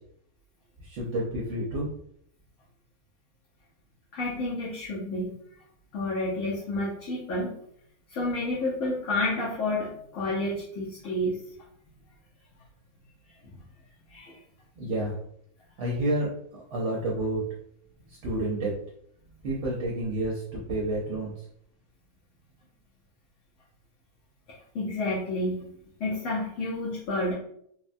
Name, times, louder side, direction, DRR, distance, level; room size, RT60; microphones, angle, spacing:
voice 1, 0.8-1.9 14.8-15.1 15.8-16.3 16.7-17.4 18.2-18.7 19.4-21.3, right 1 dB, 65° right, -4 dB, 0.9 m, -29 dB
voice 2, 4.1-5.3 5.9-7.6 8.1-11.4 13.4-13.6 14.1-14.4 24.7-25.7 26.0-27.3, left 2 dB, 65° left, -6 dB, 1.1 m, -30 dB
3.3 x 2.1 x 2.5 m, 0.70 s
omnidirectional pair, 1.5 m